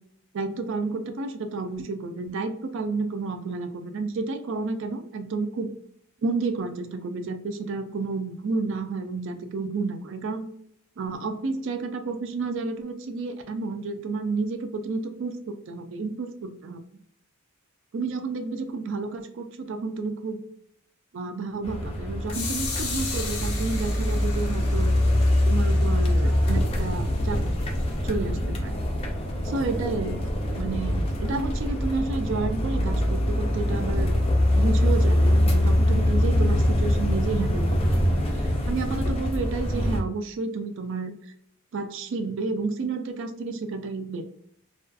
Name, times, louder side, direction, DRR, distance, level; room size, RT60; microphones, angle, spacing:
voice 1, 0.3-5.7 6.2-10.5 11.0-16.8 17.9-20.4 21.1-24.9 25.4-27.4 28.0-28.8 29.4-34.2 34.5-38.3 38.6-41.1 41.7-44.3, right 3 dB, 60° right, 8 dB, 0.4 m, -31 dB
sound 1, 21.6-40.0, left 1 dB, 25° left, 0.4 m, -24 dB
sound 2, 22.3-28.0, left 4 dB, 80° left, 0.6 m, -37 dB
2.4 x 2.3 x 2.5 m, 0.69 s
head